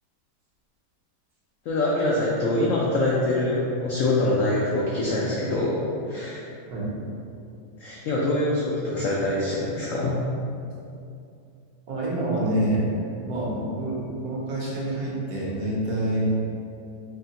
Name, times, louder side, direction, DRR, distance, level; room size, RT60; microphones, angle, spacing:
voice 1, 1.7-5.8 6.1-6.4 7.8-10.2, left 2 dB, 80° left, -5 dB, 0.7 m, -24 dB
voice 2, 11.9-12.9 13.2-16.3, right 1 dB, 65° right, -5 dB, 1.1 m, -27 dB
3.7 x 3.2 x 2.8 m, 2.5 s
omnidirectional pair, 1.9 m